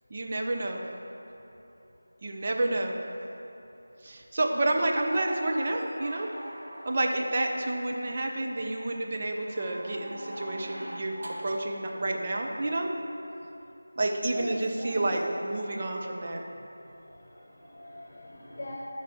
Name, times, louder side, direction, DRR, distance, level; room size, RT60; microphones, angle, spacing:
voice 1, 0.1-0.8 2.2-3.0 4.0-6.3 6.8-12.9 14.0-16.4, right 2 dB, 40° right, 1 dB, 0.8 m, -29 dB
sound 1, 4.9-7.4 9.3-11.8 13.4-13.5, right 1 dB, 55° right, 1.5 m, -42 dB
voice 2, 14.3-15.1 16.8-18.7, left 1 dB, 45° left, -4 dB, 1.3 m, -42 dB
13.0 x 5.0 x 4.6 m, 2.9 s
figure-of-eight pair, 170°, 0 cm